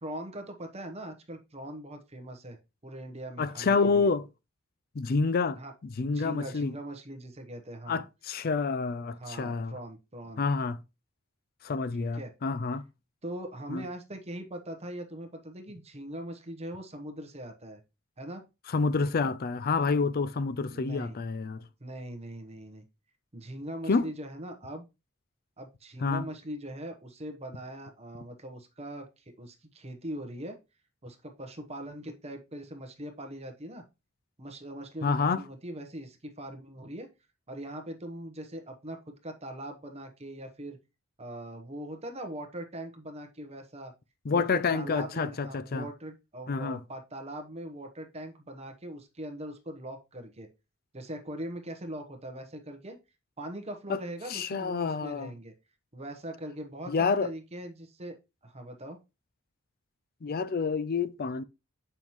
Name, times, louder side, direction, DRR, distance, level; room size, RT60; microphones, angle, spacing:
voice 1, 0.0-2.6 2.8-4.1 5.6-5.7 6.0-8.0 9.2-10.4 12.0-12.3 13.2-17.8 18.2-18.4 20.7-21.2 21.8-22.8 23.3-24.9 25.6-30.6 31.0-33.8 34.4-37.1 37.5-40.8 41.2-43.9 44.3-50.5 50.9-53.0 53.4-55.5 55.9-58.2 58.4-59.0, right 1 dB, 30° right, 1.0 m, -41 dB
voice 2, 3.4-4.3 4.9-6.7 7.9-9.7 10.4-10.8 11.6-12.8 13.7-13.8 18.7-21.6 23.9-24.0 26.0-26.3 35.0-35.4 44.2-45.9 46.5-46.8 53.9-54.0 54.3-55.3 56.9-57.3 60.2-61.4, left 4 dB, 45° left, 0.4 m, -28 dB
7.1 x 5.6 x 3.0 m
head